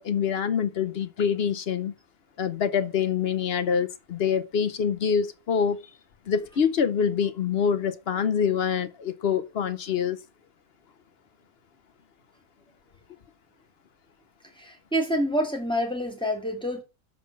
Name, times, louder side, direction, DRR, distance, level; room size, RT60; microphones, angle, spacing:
voice 1, 0.0-1.9 2.4-5.9 6.3-10.2, left 7 dB, 50° left, 0.9 m, -25 dB
voice 2, 14.6-16.8, equal, 5° left, 2.3 m, -27 dB
7.0 x 5.1 x 6.5 m
omnidirectional pair, 1.5 m